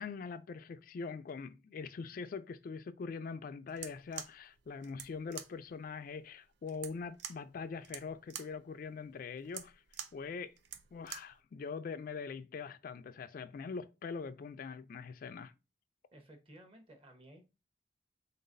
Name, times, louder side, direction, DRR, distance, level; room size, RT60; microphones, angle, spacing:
voice 1, 0.0-9.8 10.1-10.5 10.9-15.5, left 5 dB, 50° left, 0.3 m, -43 dB
sound 1, 3.7-11.4, right 9 dB, 70° right, 0.5 m, -48 dB
voice 2, 16.1-17.4, right 1 dB, 30° right, 1.0 m, -56 dB
3.9 x 3.8 x 2.5 m
head